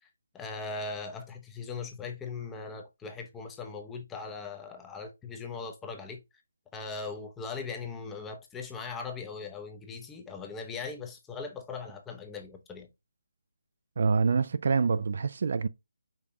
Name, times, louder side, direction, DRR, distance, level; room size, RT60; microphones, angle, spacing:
voice 1, 0.3-6.2 6.7-12.9, left 4 dB, 10° left, 0.6 m, -39 dB
voice 2, 14.0-15.7, right 5 dB, 55° right, 0.3 m, -26 dB
5.2 x 3.5 x 2.6 m
figure-of-eight pair, 160°, 0 cm